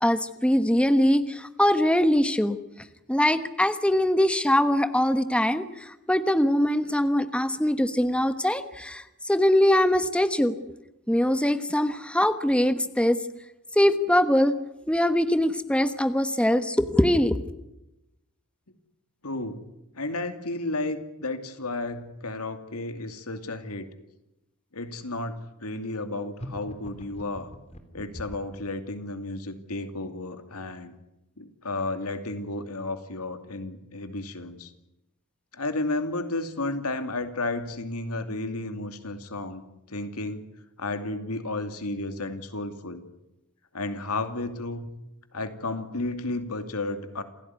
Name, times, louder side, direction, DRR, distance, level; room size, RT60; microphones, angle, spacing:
voice 1, 0.0-2.6 3.1-10.5 11.1-13.2 13.7-14.6 14.9-17.4, left 1 dB, 5° left, 10 dB, 1.2 m, -22 dB
voice 2, 19.2-19.6 19.9-23.9 24.7-27.5 27.9-30.9 31.4-34.7 35.5-39.6 39.9-40.5 40.8-43.0 43.7-44.9 45.3-47.2, left 2 dB, 85° left, 8 dB, 2.6 m, -32 dB
sound 1, 26.4-28.6, equal, 30° left, 3.4 m, -41 dB
28.0 x 16.5 x 9.5 m, 0.91 s
head